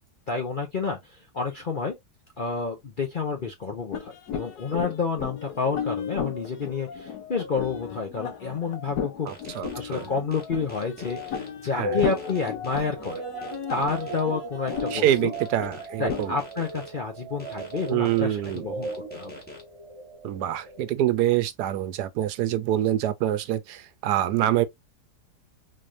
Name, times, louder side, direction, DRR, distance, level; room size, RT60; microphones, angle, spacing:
voice 1, 0.3-2.0 2.4-9.3 9.7-13.2 13.7-15.3 16.0-19.3, left 5 dB, 50° left, 0.6 m, -29 dB
sound 1, 3.9-16.4, left 8 dB, 70° left, 1.3 m, -35 dB
sound 2, 9.3-11.5 12.0-14.2 14.7-16.9 17.4-19.6, left 1 dB, 5° left, 1.1 m, -44 dB
voice 2, 9.3-10.0 11.8-12.0 14.9-16.3 17.9-18.7 20.2-24.6, right 12 dB, 80° right, 1.1 m, -25 dB
sound 3, 11.8-21.0, right 2 dB, 45° right, 1.4 m, -37 dB
4.1 x 3.2 x 2.5 m
omnidirectional pair, 1.8 m